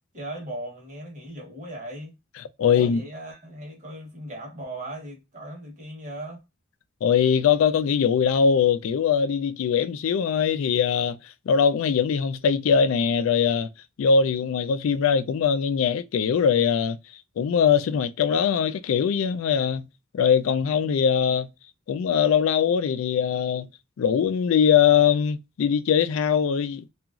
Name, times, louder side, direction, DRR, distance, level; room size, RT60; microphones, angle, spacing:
voice 1, 0.1-2.1 2.6-6.4, right 1 dB, 35° right, 1.0 m, -38 dB
voice 2, 2.6-3.0 7.0-11.2 11.5-13.7 14.0-17.0 17.4-19.9 20.1-21.5 21.9-23.7 24.0-26.8, left 7 dB, 70° left, 0.3 m, -21 dB
2.9 x 2.4 x 2.4 m
head